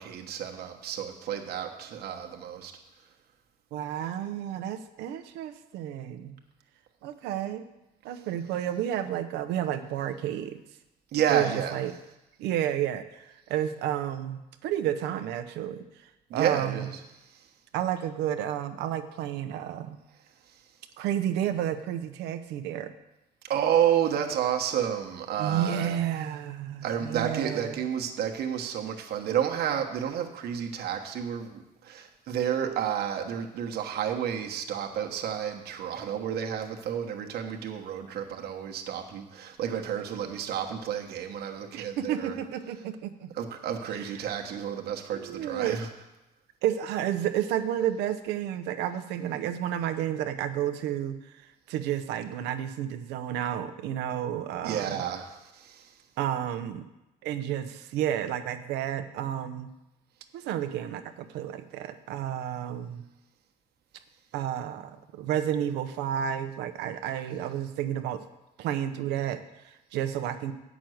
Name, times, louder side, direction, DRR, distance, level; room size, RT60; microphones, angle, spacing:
voice 1, 0.0-2.7 11.1-11.8 16.3-16.9 23.5-26.0 26.8-42.4 43.3-45.9 54.6-55.9, right 9 dB, 70° right, 2 dB, 1.3 m, -30 dB
voice 2, 3.7-6.4 7.0-7.6 8.0-10.6 11.3-11.9 12.4-15.9 16.3-16.9 17.7-20.0 21.0-22.9 25.4-27.8 41.7-43.3 43.9-44.2 45.1-45.8 46.6-51.2 51.7-55.0 56.2-56.9 57.2-59.7 60.3-63.1 64.3-68.2 68.6-70.5, right 10 dB, 90° right, 9 dB, 0.8 m, -31 dB
8.7 x 6.1 x 7.8 m, 0.95 s
cardioid pair, 110°, 17 cm